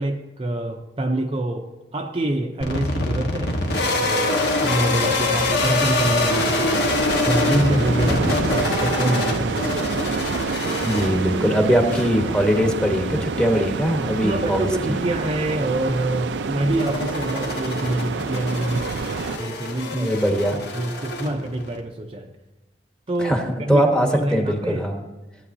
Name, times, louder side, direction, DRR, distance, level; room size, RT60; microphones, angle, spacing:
voice 1, 0.0-3.6 4.0-6.9 7.2-10.3 11.5-11.6 14.2-19.0 19.4-20.1 20.5-22.3 23.1-24.8, right 1 dB, 30° right, 3 dB, 0.5 m, -26 dB
sound 1, 2.6-21.8, left 2 dB, 65° left, 1.3 m, -26 dB
sound 2, 3.5-19.4, right 4 dB, 90° right, 0.5 m, -28 dB
voice 2, 10.7-14.6 14.9-15.0 19.9-20.6 23.2-23.4 23.7-25.0, equal, 5° left, 3 dB, 1.1 m, -21 dB
15.0 x 9.1 x 2.7 m, 1.1 s
head